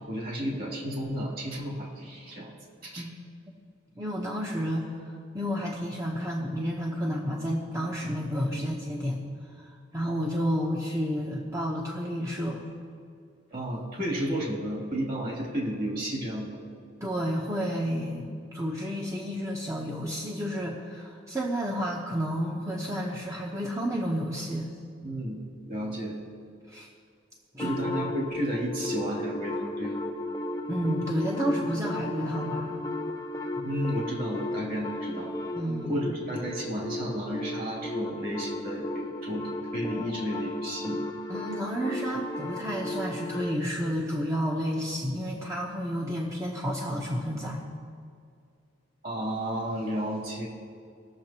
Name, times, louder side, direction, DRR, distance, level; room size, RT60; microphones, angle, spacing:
voice 1, 0.1-2.5 2.8-3.1 8.0-8.1 8.5-8.6 13.5-16.6 25.0-25.4 25.6-26.1 27.6-30.0 33.6-35.3 35.9-41.0 49.0-50.5, equal, 50° right, -3 dB, 2.8 m, -32 dB
voice 2, 4.0-9.2 9.6-12.6 17.0-24.7 26.7-26.9 27.5-27.8 30.7-32.8 33.6-33.8 35.5-36.0 41.3-47.6, equal, 15° right, -3 dB, 0.9 m, -31 dB
sound 1, 27.6-43.6, left 1 dB, 20° left, 0.6 m, -35 dB
20.0 x 7.1 x 2.9 m, 2.3 s
head